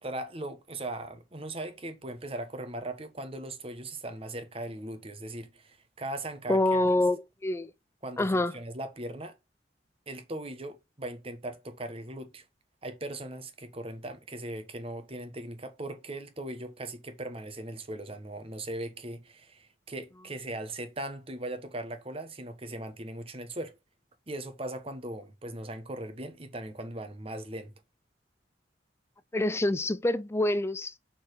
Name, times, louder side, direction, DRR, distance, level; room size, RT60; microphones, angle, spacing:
voice 1, 0.0-6.9 8.0-9.4 10.1-12.4 12.8-23.7 24.3-27.7, right 1 dB, 30° right, 1.2 m, -39 dB
voice 2, 6.5-7.7 8.2-8.5 29.3-31.0, left 1 dB, 15° left, 0.4 m, -26 dB
5.9 x 4.6 x 4.6 m
head